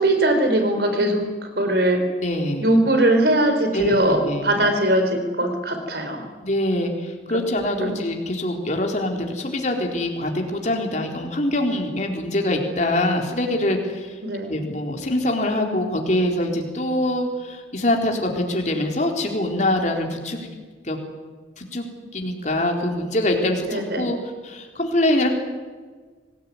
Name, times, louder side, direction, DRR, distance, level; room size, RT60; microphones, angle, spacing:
voice 1, 0.0-2.0 2.6-6.3 7.8-7.9 14.2-14.5 23.7-24.1, right 1 dB, 60° right, 7 dB, 4.7 m, -20 dB
voice 2, 2.2-2.7 3.7-4.0 4.2-4.5 6.4-14.2 14.5-20.4 20.8-21.0 21.6-21.9 22.1-24.2 24.4-25.3, left 1 dB, 40° left, 2 dB, 4.0 m, -24 dB
26.0 x 18.5 x 9.7 m, 1.4 s
head